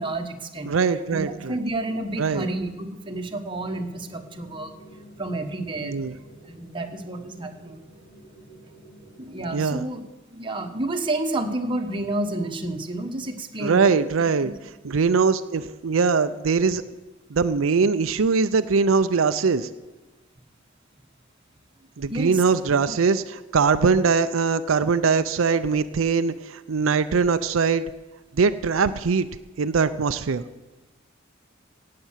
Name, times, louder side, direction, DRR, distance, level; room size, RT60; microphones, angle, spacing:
voice 1, 0.0-0.7 1.1-4.7 5.2-6.0 6.5-7.8 9.2-10.0 10.3-14.5 22.1-22.4, right 2 dB, 25° right, 4 dB, 1.3 m, -30 dB
voice 2, 0.7-1.6 2.2-2.5 5.8-6.1 9.5-9.8 13.6-14.5 14.8-16.8 17.3-19.7 22.0-27.8 28.3-29.3 29.6-30.4, right 5 dB, 85° right, 11 dB, 0.5 m, -22 dB
sound 1, 3.5-9.8, right 1 dB, 45° left, 3.1 m, -49 dB
17.5 x 7.6 x 7.3 m, 1.1 s
head